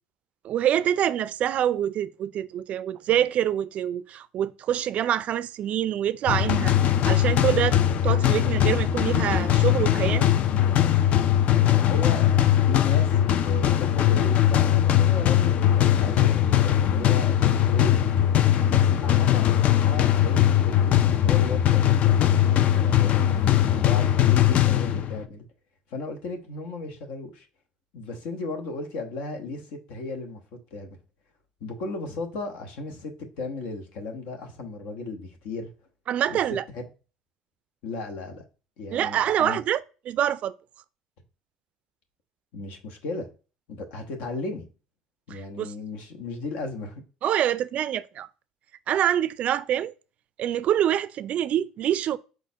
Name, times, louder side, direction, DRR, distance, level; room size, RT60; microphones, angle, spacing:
voice 1, 0.4-6.7 7.1-7.8 8.0-10.3 36.1-36.6 38.9-39.8 40.1-40.5 45.3-45.7 47.2-48.3 48.9-49.9 50.4-52.2, right 10 dB, 50° right, 0.3 m, -25 dB
sound 1, 6.3-25.3, left 11 dB, 55° left, 0.4 m, -20 dB
voice 2, 11.7-18.0 18.4-20.9 21.2-25.5 25.9-27.5 27.9-30.4 30.7-31.0 31.6-35.7 36.3-36.8 37.8-38.4 38.8-39.6 42.5-43.3 43.7-44.7 45.3-47.0, left 3 dB, 70° left, 1.0 m, -35 dB
4.6 x 4.0 x 2.7 m
hypercardioid pair, 70°, 3 cm